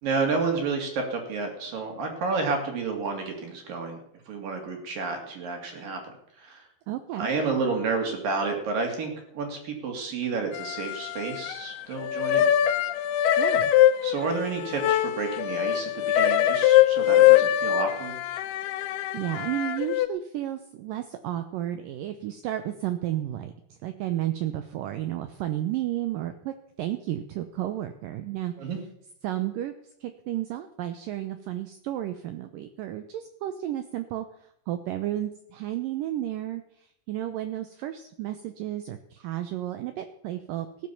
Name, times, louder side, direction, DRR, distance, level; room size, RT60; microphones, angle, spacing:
voice 1, 0.0-4.0 4.3-6.0 6.4-6.6 7.2-12.5 14.0-18.2 28.6-28.8, right 4 dB, 60° right, 2 dB, 4.4 m, -30 dB
voice 2, 6.9-7.3 13.4-13.7 19.1-23.5 23.8-28.7 29.2-29.7 30.0-34.3 34.7-40.7, right 13 dB, 75° right, 9 dB, 2.1 m, -32 dB
sound 1, 10.5-11.7 12.0-20.1, left 12 dB, 80° left, 2.7 m, -23 dB
16.0 x 11.0 x 7.1 m, 0.72 s
omnidirectional pair, 4.7 m